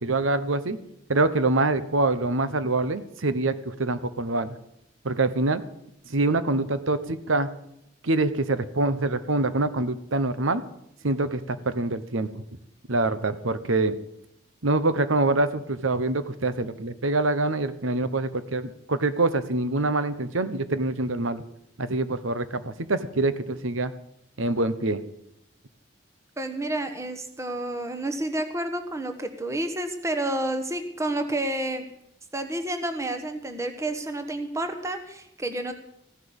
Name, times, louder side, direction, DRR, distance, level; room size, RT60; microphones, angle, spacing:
voice 1, 0.0-0.8 1.1-4.6 5.0-5.6 6.1-7.5 8.0-10.6 11.0-12.4 12.9-14.0 14.6-21.4 21.8-23.9 24.4-25.0, right 2 dB, 90° right, 12 dB, 1.1 m, -25 dB
voice 2, 26.4-31.9 32.3-35.7, right 1 dB, 15° right, 6 dB, 1.2 m, -30 dB
15.5 x 10.0 x 7.2 m, 0.77 s
head